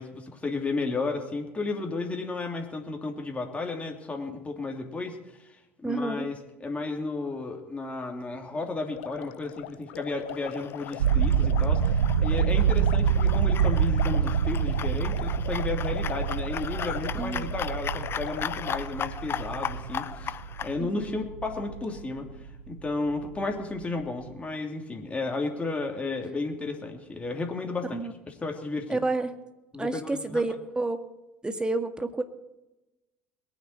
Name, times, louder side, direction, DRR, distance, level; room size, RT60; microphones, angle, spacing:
voice 1, 0.0-20.3 20.6-22.2 22.7-28.0 28.4-29.0 29.7-30.4, left 3 dB, 20° left, 2 dB, 3.1 m, -33 dB
voice 2, 5.8-6.3 17.2-17.5 20.8-21.1 27.9-28.1 28.9-29.3 29.8-31.0 31.4-32.2, right 2 dB, 15° right, 8 dB, 1.9 m, -29 dB
sound 1, 8.9-18.8, left 13 dB, 70° left, 0.8 m, -40 dB
sound 2, 10.3-20.8, left 8 dB, 40° left, 0.7 m, -37 dB
sound 3, 11.0-22.9 23.1-23.5 23.8-24.0, right 7 dB, 85° right, 0.6 m, -27 dB
22.0 x 9.7 x 4.5 m, 0.97 s
hypercardioid pair, 65°, 6 cm